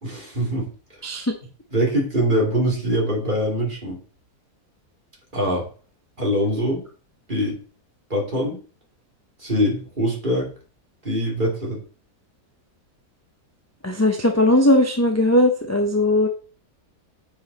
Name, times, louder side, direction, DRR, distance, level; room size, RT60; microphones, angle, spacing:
voice 1, 0.0-0.7 1.7-4.0 5.3-5.6 6.2-6.8 7.3-7.6 8.1-8.6 9.4-10.5 11.0-11.8, equal, 30° right, -2 dB, 2.8 m, -23 dB
voice 2, 1.0-1.3 13.8-16.3, left 1 dB, 15° left, 3 dB, 0.6 m, -18 dB
9.0 x 5.0 x 4.1 m, 0.39 s
omnidirectional pair, 1.6 m